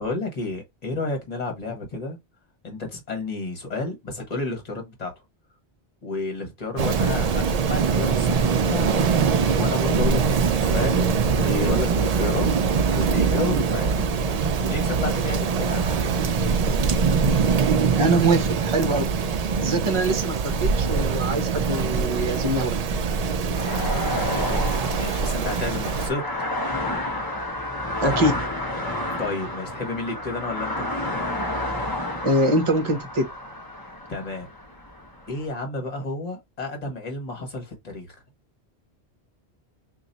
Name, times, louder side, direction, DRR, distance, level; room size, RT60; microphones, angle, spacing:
voice 1, 0.0-2.2 2.6-5.1 6.0-16.1 23.7-26.2 29.2-30.9 34.1-34.5 35.3-38.2, left 2 dB, 40° left, 1.4 m, -31 dB
Rain, 6.8-26.1, right 5 dB, 60° right, 0.4 m, -23 dB
voice 2, 18.0-19.0 19.5-22.7 28.0-28.3 32.2-33.2, right 1 dB, 30° right, 0.8 m, -23 dB
sound 1, 23.5-35.5, left 1 dB, 20° left, 1.0 m, -30 dB
3.0 x 2.4 x 3.9 m
omnidirectional pair, 1.1 m